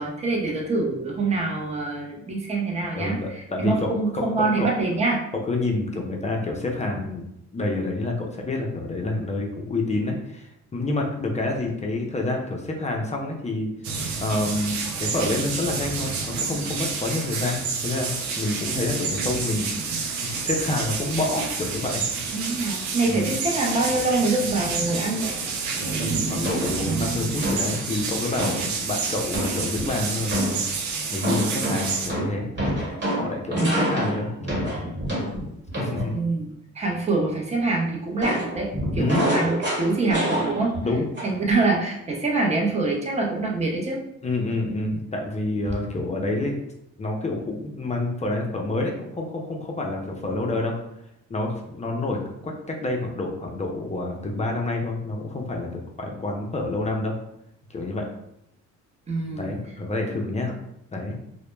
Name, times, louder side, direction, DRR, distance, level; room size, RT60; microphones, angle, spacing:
voice 1, 0.0-5.2 22.3-25.4 33.5-33.8 36.1-40.7 41.2-44.0 59.1-59.5, right 3 dB, 20° right, -1 dB, 0.6 m, -25 dB
voice 2, 3.0-4.7 5.3-18.1 18.4-22.0 23.1-23.3 25.7-30.6 31.1-32.5 33.1-34.7 35.8-36.1 38.9-39.3 40.8-41.1 44.2-46.6 47.0-50.8 51.3-57.1 57.7-58.1 59.3-60.6 60.9-61.1, left 2 dB, 25° left, 1 dB, 0.4 m, -28 dB
sound 1, 13.8-32.1, right 4 dB, 70° right, 0.5 m, -29 dB
Contacto Metal, 26.4-26.8 27.4-27.8 28.4-28.7 29.3-29.9 30.3-30.7 31.2-36.1 38.2-40.9 41.2-41.5, right 1 dB, 35° right, 1.3 m, -27 dB
2.1 x 2.0 x 3.1 m, 0.77 s
cardioid pair, 90°, 30 cm